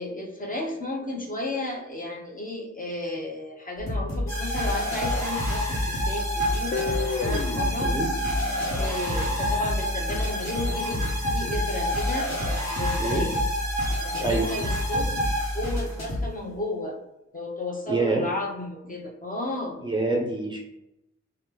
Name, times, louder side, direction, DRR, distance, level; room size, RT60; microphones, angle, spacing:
voice 1, 0.0-7.9 8.8-12.3 12.7-13.4 14.0-15.2 15.5-17.0 17.3-19.8, left 2 dB, 30° left, -2 dB, 0.9 m, -33 dB
sound 1, 3.8-16.3, left 1 dB, 65° left, 1.1 m, -30 dB
sound 2, 4.3-16.1, equal, 10° left, 1.3 m, -30 dB
Guitar, 6.7-9.7, left 4 dB, 45° left, 0.4 m, -33 dB
voice 2, 17.9-18.2 19.8-20.6, right 3 dB, 15° right, -2 dB, 0.5 m, -26 dB
3.3 x 2.2 x 3.0 m, 0.85 s
wide cardioid pair, 70°, 29 cm